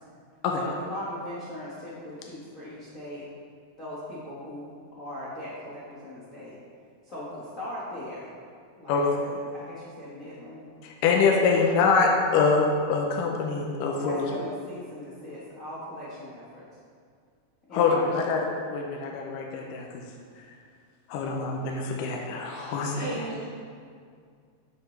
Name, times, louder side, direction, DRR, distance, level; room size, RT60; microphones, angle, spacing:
voice 1, 0.6-3.2 3.8-4.7 5.0-6.6 7.1-8.3 8.8-9.2 9.4-10.7 11.3-11.6 14.0-16.6 17.7-18.3, left 1 dB, 65° left, -9 dB, 0.8 m, -39 dB
voice 2, 8.9-9.3 10.8-14.3 17.7-19.9 21.1-23.1, left 4 dB, 80° left, 0 dB, 2.3 m, -25 dB
voice 3, 22.4-23.4, right 2 dB, 30° right, -10 dB, 1.6 m, -36 dB
11.5 x 6.6 x 3.3 m, 2.1 s
omnidirectional pair, 3.9 m